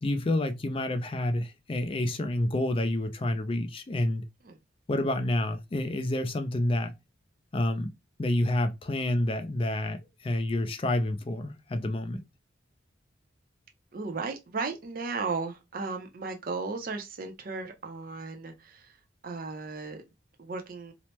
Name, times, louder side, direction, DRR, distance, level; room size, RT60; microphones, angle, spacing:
voice 1, 0.0-4.2 4.9-6.9 7.5-7.9 8.2-12.2, left 1 dB, 30° left, 0.4 m, -28 dB
voice 2, 13.9-19.0 19.2-20.0 20.4-20.9, right 4 dB, 50° right, 0.5 m, -35 dB
2.9 x 2.0 x 3.0 m
head